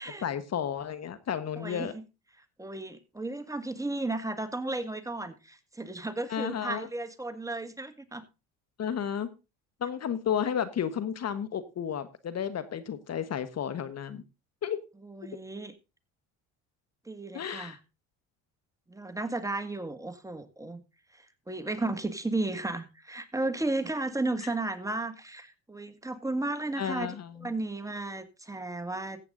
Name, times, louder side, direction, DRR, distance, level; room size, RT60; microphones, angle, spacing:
voice 1, 0.2-1.9 6.3-6.9 8.8-9.3 9.8-14.2 14.6-14.8 17.3-17.8 24.4-24.5 26.8-27.5, left 8 dB, 45° left, 13 dB, 1.3 m, -32 dB
voice 2, 1.6-2.0 2.6-8.2 15.0-15.7 17.1-17.8 18.9-20.8 21.5-29.2, right 2 dB, 10° right, 9 dB, 1.8 m, -34 dB
14.5 x 8.2 x 3.9 m, 0.29 s
supercardioid pair, 75°, 36 cm